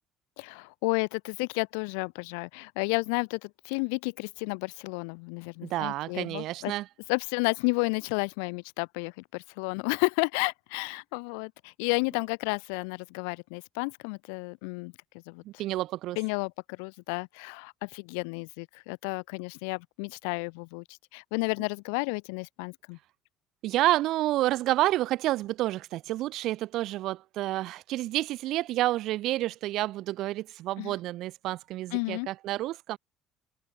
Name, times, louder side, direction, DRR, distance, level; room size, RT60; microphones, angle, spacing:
voice 1, 0.4-6.7 7.1-14.9 15.3-15.4 16.2-23.0 30.8-30.9 31.9-32.3, left 37 dB, 75° left, 2.8 m, -32 dB
voice 2, 5.6-6.9 15.4-16.2 23.6-33.0, right 15 dB, 65° right, 3.9 m, -29 dB
open air
hypercardioid pair, 65°, 0 cm